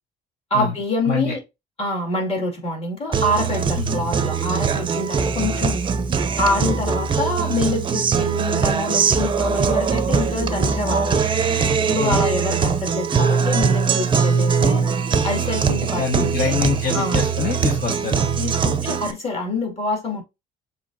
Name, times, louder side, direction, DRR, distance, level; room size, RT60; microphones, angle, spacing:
voice 1, 0.5-1.4 1.8-5.8 6.4-11.2 11.9-14.8 15.2-16.6 16.9-17.2 18.4-20.2, left 2 dB, 35° left, 2.2 m, -26 dB
Guitar, 3.1-19.1, right 6 dB, 30° right, 0.5 m, -21 dB
voice 2, 16.0-18.2, left 5 dB, 60° left, 1.2 m, -25 dB
6.8 x 2.8 x 2.6 m
cardioid pair, 110°, 17 cm